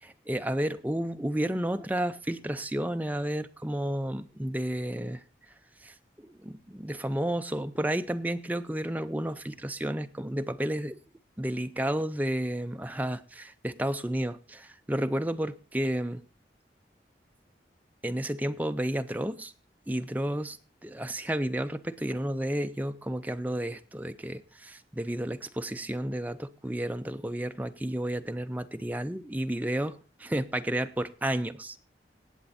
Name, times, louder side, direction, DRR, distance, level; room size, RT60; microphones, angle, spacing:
voice 1, 0.3-5.2 5.8-5.9 6.2-11.0 11.4-16.3 18.0-19.5 19.9-20.6 20.9-31.8, right 1 dB, 10° right, 0.5 m, -31 dB
18.5 x 8.0 x 4.2 m
head